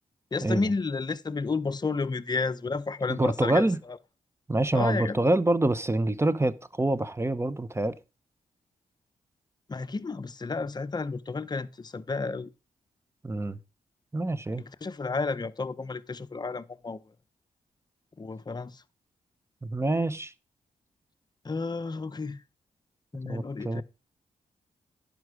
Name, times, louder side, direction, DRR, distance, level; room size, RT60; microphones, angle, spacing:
voice 1, 0.3-4.0 4.7-5.3 9.7-12.5 14.5-17.0 18.2-18.8 21.4-22.4 23.1-23.8, left 4 dB, 30° left, 0.7 m, -32 dB
voice 2, 3.2-3.8 4.5-7.9 13.2-13.6 14.1-14.6 19.6-20.3 23.2-23.8, right 2 dB, 20° right, 0.8 m, -26 dB
11.0 x 5.3 x 4.7 m
supercardioid pair, 50°, 14 cm